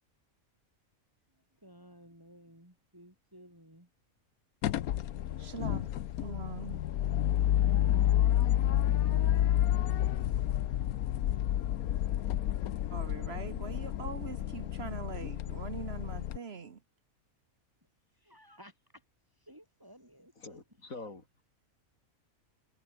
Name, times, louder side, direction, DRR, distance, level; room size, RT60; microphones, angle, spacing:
voice 1, 1.6-3.9 5.6-5.9 8.4-9.5 9.8-10.0 18.1-19.0 19.4-21.1, equal, 15° right, 7.5 m, -55 dB
sound 1, 4.6-16.4, left 12 dB, 90° left, 1.3 m, -30 dB
voice 2, 5.4-5.9 6.2-6.8 12.9-16.8, right 5 dB, 50° right, 1.3 m, -42 dB
voice 3, 20.4-21.4, left 3 dB, 70° left, 4.4 m, -46 dB
omnidirectional pair, 1.5 m